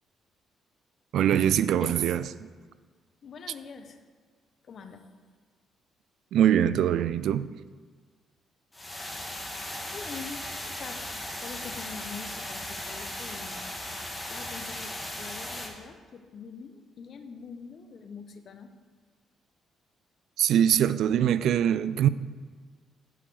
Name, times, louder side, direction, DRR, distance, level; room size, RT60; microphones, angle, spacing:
voice 1, 1.1-2.3 6.3-7.5 20.4-22.1, right 10 dB, 75° right, 0.3 m, -23 dB
voice 2, 3.2-4.0 4.6-5.1 9.9-11.0 11.4-13.7 14.3-18.7, left 5 dB, 55° left, 0.9 m, -44 dB
sound 1, 8.7-15.7, left 1 dB, 15° left, 1.8 m, -37 dB
9.9 x 5.0 x 6.1 m
cardioid pair, 90°, 0 cm